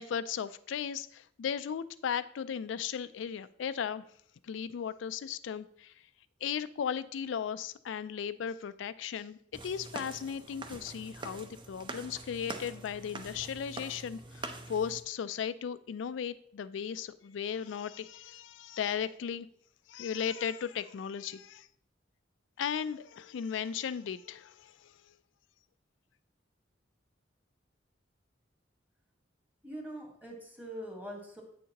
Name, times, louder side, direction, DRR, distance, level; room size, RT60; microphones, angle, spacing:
voice 1, 0.0-4.0 4.4-5.9 6.4-9.4 9.6-19.5 19.9-21.7 22.6-25.1, left 7 dB, 70° left, 14 dB, 0.3 m, -36 dB
sound 1, 9.5-15.0, right 2 dB, 25° right, 0.6 m, -44 dB
voice 2, 29.6-31.4, equal, 10° right, 1 dB, 1.5 m, -43 dB
8.7 x 6.4 x 2.9 m, 0.67 s
head